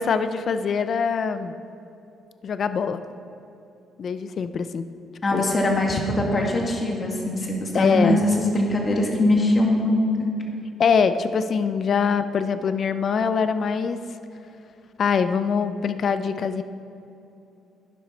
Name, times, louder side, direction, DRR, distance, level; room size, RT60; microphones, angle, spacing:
voice 1, 0.0-1.5 2.4-3.0 4.0-4.8 5.3-5.5 7.7-8.2 10.8-14.0 15.0-16.6, left 6 dB, 45° left, 11 dB, 0.5 m, -23 dB
voice 2, 5.2-10.3, left 1 dB, 30° left, 0 dB, 2.0 m, -22 dB
11.5 x 10.0 x 4.3 m, 2.9 s
cardioid pair, 125°, 0 cm